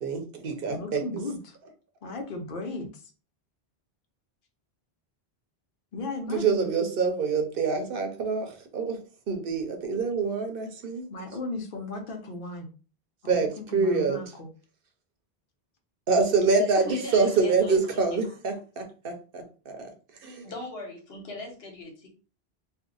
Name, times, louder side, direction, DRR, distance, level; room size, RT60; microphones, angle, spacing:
voice 1, 0.0-1.0 6.3-9.0 9.3-11.1 13.3-14.2 16.1-19.9 20.2-20.5, right 4 dB, 65° right, 6 dB, 0.8 m, -26 dB
voice 2, 0.7-1.6 2.0-2.9 5.9-6.6 11.1-12.7 13.2-14.5, left 2 dB, 60° left, 3 dB, 0.8 m, -36 dB
voice 3, 16.8-17.8 18.1-18.3 20.4-22.1, left 2 dB, 75° left, 2 dB, 1.2 m, -39 dB
2.7 x 2.1 x 3.7 m, 0.36 s
omnidirectional pair, 1.0 m